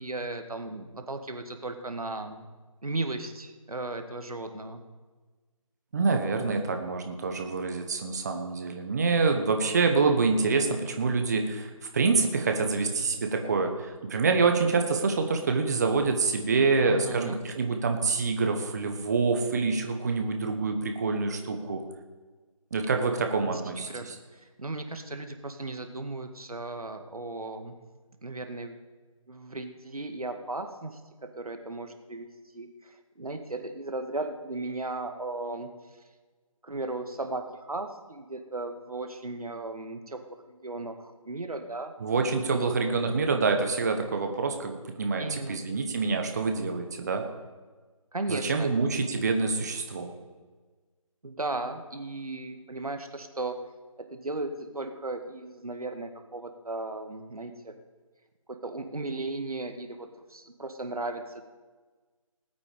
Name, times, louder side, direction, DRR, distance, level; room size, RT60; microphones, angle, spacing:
voice 1, 0.0-2.5 2.8-4.8 16.9-17.4 23.9-27.8 28.2-28.8 29.3-31.0 31.4-32.3 32.5-35.7 36.6-40.2 40.4-41.9 42.5-42.6 45.2-45.6 48.1-48.7 51.2-53.5 54.0-57.7 58.5-61.4, right 2 dB, 80° right, 6 dB, 1.9 m, -36 dB
voice 2, 5.9-21.8 22.7-24.1 42.0-47.2 48.3-50.1, right 4 dB, 30° right, 5 dB, 1.2 m, -26 dB
19.5 x 8.5 x 5.1 m, 1.4 s
figure-of-eight pair, 160°, 18 cm